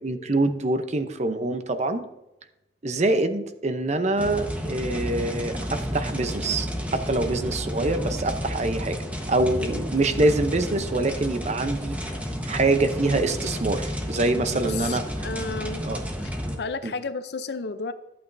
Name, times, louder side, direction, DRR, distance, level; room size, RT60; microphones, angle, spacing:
voice 1, 0.0-2.0 2.8-9.0 9.3-12.0 12.4-15.0 15.8-16.0 16.8-16.9, right 2 dB, 40° right, 9 dB, 0.7 m, -25 dB
sound 1, 4.2-16.6, equal, 10° right, 1.2 m, -31 dB
voice 2, 14.5-15.9 16.2-17.9, left 4 dB, 65° left, 12 dB, 0.6 m, -33 dB
11.0 x 8.6 x 2.7 m, 0.93 s
head